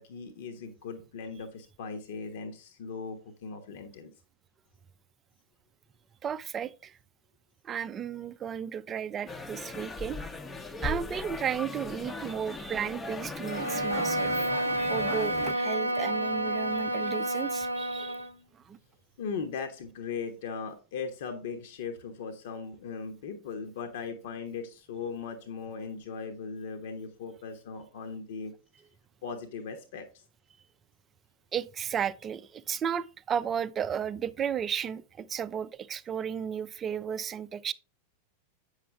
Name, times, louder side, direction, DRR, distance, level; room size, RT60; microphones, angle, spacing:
voice 1, 0.0-4.1 19.2-28.5 29.2-30.2, left 5 dB, 55° left, 1.1 m, -38 dB
voice 2, 6.2-6.9 7.6-10.2 10.8-18.3 18.7-18.8 31.5-37.7, right 8 dB, 25° right, 0.5 m, -34 dB
sound 1, 9.3-15.5, left 3 dB, 15° left, 0.8 m, -38 dB
Bowed string instrument, 13.4-18.3, right 1 dB, 85° right, 0.6 m, -30 dB
8.4 x 6.5 x 3.7 m
figure-of-eight pair, 90°, 0 cm